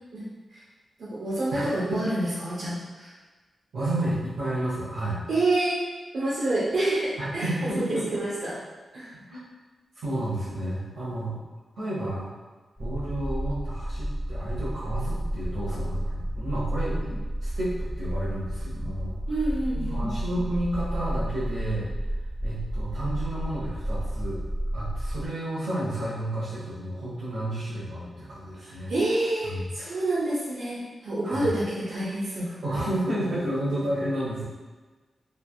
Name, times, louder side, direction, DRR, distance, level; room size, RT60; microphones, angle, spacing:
voice 1, 1.0-3.1 5.3-5.8 6.1-7.5 7.7-8.6 8.9-9.1 17.0-17.1 19.3-20.1 28.6-32.6, right 2 dB, 70° right, -8 dB, 0.6 m, -28 dB
voice 2, 1.5-2.0 3.7-5.2 7.2-8.2 9.1-9.5 10.0-11.4 11.8-12.3 12.8-19.2 19.7-21.9 22.4-24.4 24.7-28.9 29.4-29.6 31.2-31.5 32.6-34.4, right 1 dB, 90° right, -12 dB, 0.9 m, -31 dB
sound 1, 12.8-25.3, right 1 dB, ahead, 0.4 m, -31 dB
3.2 x 2.2 x 2.3 m, 1.3 s
wide cardioid pair, 155°, 0 cm